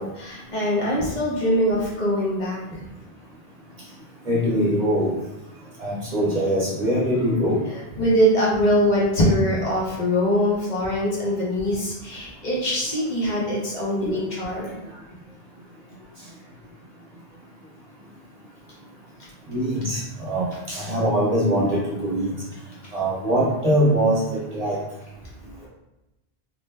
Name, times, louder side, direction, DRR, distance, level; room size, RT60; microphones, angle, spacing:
voice 1, 0.0-2.8 8.0-14.8 25.6-25.7, equal, 50° left, -5 dB, 0.8 m, -23 dB
voice 2, 4.3-5.1 5.8-7.6 14.0-14.3 19.5-22.3 22.9-24.8, equal, 45° right, -6 dB, 0.7 m, -22 dB
2.6 x 2.1 x 3.1 m, 0.96 s
omnidirectional pair, 1.0 m